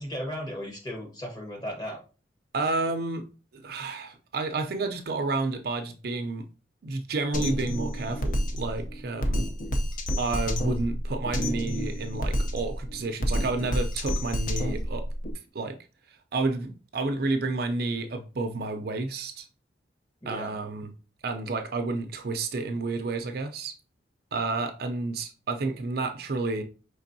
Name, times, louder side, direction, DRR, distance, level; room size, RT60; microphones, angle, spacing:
voice 1, 0.0-2.0 20.2-20.5, equal, 20° left, 1.2 m, -35 dB
voice 2, 2.5-3.3 3.5-6.5 6.8-9.5 10.2-15.1 15.5-15.8 16.3-19.5 20.3-20.9 21.2-23.7 24.3-26.6, right 3 dB, 55° right, 0.5 m, -30 dB
Drum kit, 7.3-15.3, equal, 45° left, 0.6 m, -29 dB
5.2 x 3.4 x 2.6 m
head